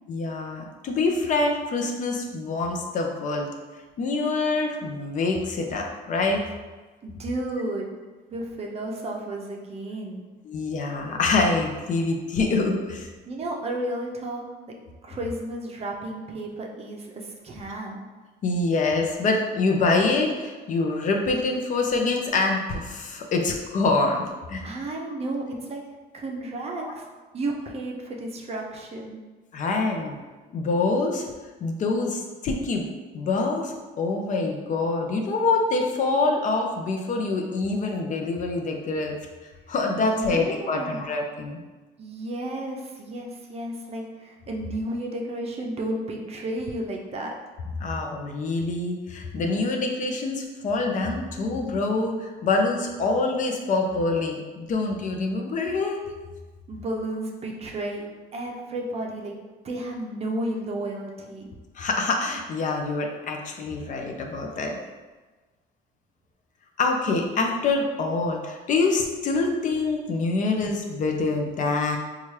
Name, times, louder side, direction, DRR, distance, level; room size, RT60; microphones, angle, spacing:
voice 1, 0.1-3.5 4.0-6.4 10.5-13.1 18.4-24.7 26.8-26.9 29.5-30.2 30.5-31.3 31.6-32.8 33.1-39.2 39.7-41.6 47.8-56.0 61.7-64.8 66.8-72.0, left 3 dB, 50° left, 2 dB, 0.6 m, -25 dB
voice 2, 7.0-8.0 8.3-10.3 13.3-14.4 15.0-18.1 24.6-25.8 26.1-27.1 27.3-29.2 39.9-41.1 42.0-47.3 56.7-59.3 59.6-61.4, right 1 dB, 35° right, 0 dB, 0.6 m, -32 dB
4.2 x 2.4 x 3.1 m, 1.3 s
cardioid pair, 110°, 17 cm